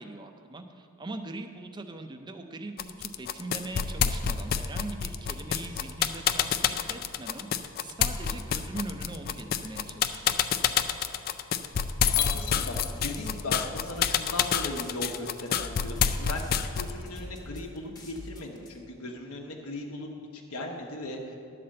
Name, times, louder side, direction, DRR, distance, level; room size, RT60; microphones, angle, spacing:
voice 1, 0.0-10.3, right 2 dB, 20° right, 6 dB, 0.5 m, -41 dB
sound 1, 2.8-17.0, left 8 dB, 45° left, 0.3 m, -27 dB
voice 2, 12.0-20.1 20.3-21.4, left 2 dB, 80° left, 0 dB, 1.0 m, -38 dB
sound 2, 12.4-18.7, left 1 dB, 15° left, 0.9 m, -45 dB
11.5 x 4.2 x 7.5 m, 2.7 s
head